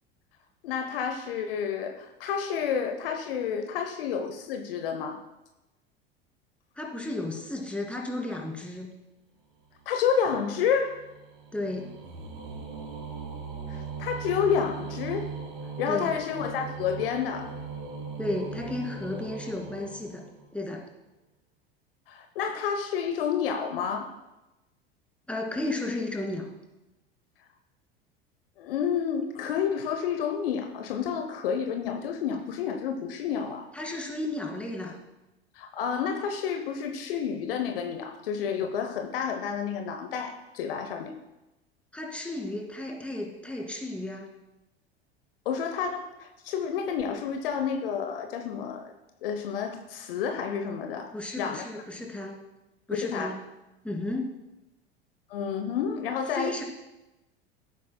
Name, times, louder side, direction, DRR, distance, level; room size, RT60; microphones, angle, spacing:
voice 1, 0.6-5.2 9.9-11.0 13.7-15.3 15.8-17.5 22.1-24.2 28.6-33.7 35.5-41.1 45.4-48.9 49.2-51.7 52.9-53.3 55.3-56.6, left 7 dB, 65° left, 6 dB, 0.9 m, -30 dB
voice 2, 6.8-8.9 11.5-11.9 15.9-16.2 18.2-20.3 20.5-20.8 25.3-26.5 33.7-35.0 41.9-44.3 51.1-52.4 52.9-53.3 53.8-54.3 56.3-56.6, left 2 dB, 5° left, 0 dB, 2.3 m, -33 dB
sound 1, 9.7-20.7, right 5 dB, 50° right, 2.9 m, -39 dB
16.5 x 8.4 x 2.2 m, 1.0 s
figure-of-eight pair, 75°, 31 cm